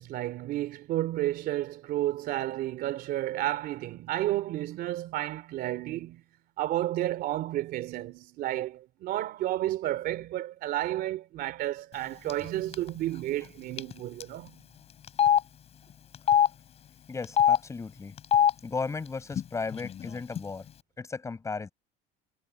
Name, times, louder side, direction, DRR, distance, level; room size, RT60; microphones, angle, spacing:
voice 1, 0.0-6.2 6.6-14.6, right 14 dB, 50° right, 3.1 m, -31 dB
Telephone, 12.3-12.5 12.7-12.9 13.8-13.9 14.2-14.3 15.1-15.4 16.1-16.5 17.2-17.6 18.2-18.5 19.3-19.4 19.7-20.4, left 9 dB, 30° left, 5.1 m, -22 dB
voice 2, 17.1-18.1 18.6-20.7 21.0-21.7, left 4 dB, 15° left, 6.7 m, -35 dB
cardioid pair, 170°, 20 cm